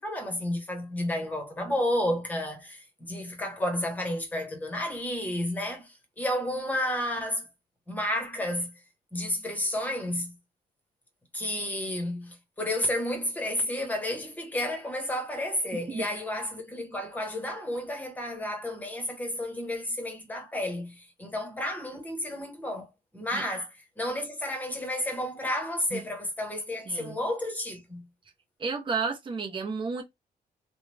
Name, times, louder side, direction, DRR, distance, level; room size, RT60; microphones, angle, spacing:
voice 1, 0.0-7.5 7.9-8.7 9.1-10.3 11.3-22.9 23.1-23.7 24.0-28.1, left 1 dB, 10° left, 1.1 m, -31 dB
voice 2, 26.9-27.2 28.6-30.0, right 5 dB, 30° right, 0.9 m, -32 dB
3.1 x 2.3 x 3.3 m
wide cardioid pair, 160°, 17 cm